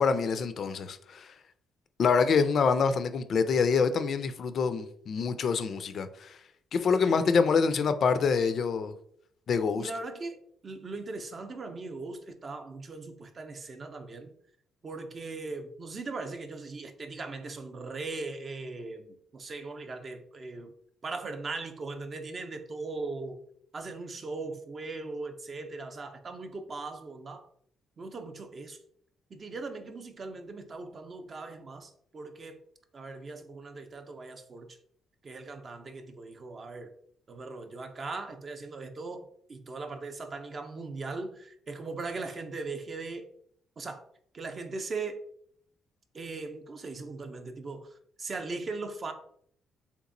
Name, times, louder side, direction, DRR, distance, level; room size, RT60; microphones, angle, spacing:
voice 1, 0.0-1.3 2.0-6.4 6.7-8.9 9.5-9.9, left 5 dB, 55° left, 0.3 m, -26 dB
voice 2, 9.8-14.3 14.8-20.7 21.0-23.4 23.7-27.5 28.0-28.8 29.3-32.6 32.9-34.8 35.2-36.9 37.3-43.3 43.8-44.0 44.3-45.2 46.1-49.1, right 3 dB, 40° right, 0.5 m, -39 dB
3.4 x 2.9 x 2.5 m
cardioid pair, 90°, 0 cm